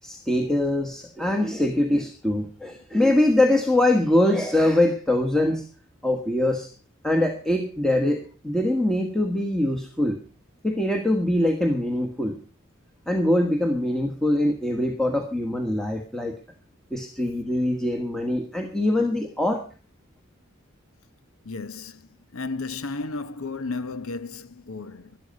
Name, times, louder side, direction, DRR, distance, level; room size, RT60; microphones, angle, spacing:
voice 1, 0.0-5.6 6.0-6.7 7.0-10.2 10.6-12.3 13.1-16.4 16.9-19.6, left 1 dB, 5° left, 1.3 m, -23 dB
voice 2, 21.4-25.2, left 3 dB, 85° left, 0.9 m, -34 dB
13.0 x 12.0 x 5.3 m
head